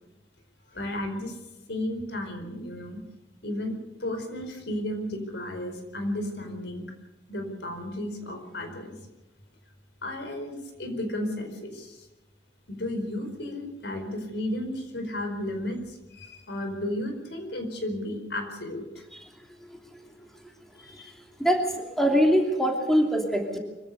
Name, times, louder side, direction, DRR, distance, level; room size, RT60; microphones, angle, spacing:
voice 1, 0.7-1.4 1.7-3.0 3.4-6.9 7.3-8.9 10.0-12.0 12.7-18.8 20.8-21.1, left 1 dB, 65° left, 5 dB, 4.7 m, -33 dB
voice 2, 19.1-20.1 20.7-23.6, equal, ahead, 1 dB, 3.0 m, -25 dB
25.0 x 16.0 x 6.9 m, 1.1 s
head